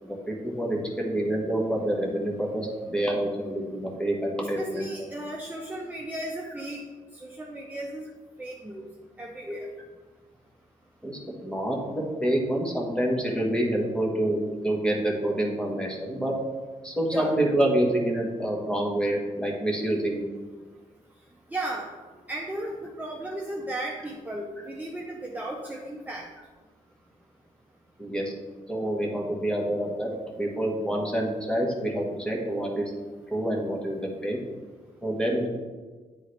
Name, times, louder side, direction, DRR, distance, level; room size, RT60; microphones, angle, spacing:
voice 1, 0.0-4.9 11.0-16.3 16.8-20.2 28.0-28.3 28.7-32.8 33.3-34.4 35.0-35.5, right 1 dB, 5° left, -1 dB, 1.3 m, -27 dB
voice 2, 4.4-6.8 7.1-8.1 8.4-8.9 9.2-9.7 17.1-17.3 21.5-21.9 22.3-26.2, right 1 dB, 10° right, -1 dB, 0.6 m, -35 dB
9.6 x 3.7 x 3.2 m, 1.4 s
cardioid pair, 100°, 14 cm